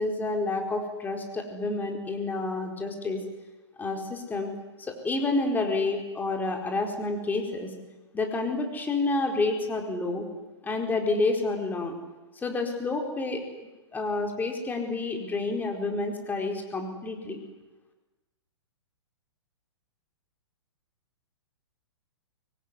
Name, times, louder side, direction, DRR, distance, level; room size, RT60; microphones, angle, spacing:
voice 1, 0.0-3.2 3.8-4.5 4.8-7.7 8.1-10.3 10.6-11.9 12.4-17.4, left 3 dB, 10° left, 3 dB, 4.5 m, -29 dB
24.0 x 23.5 x 9.7 m, 1.1 s
hypercardioid pair, 135°, 15 cm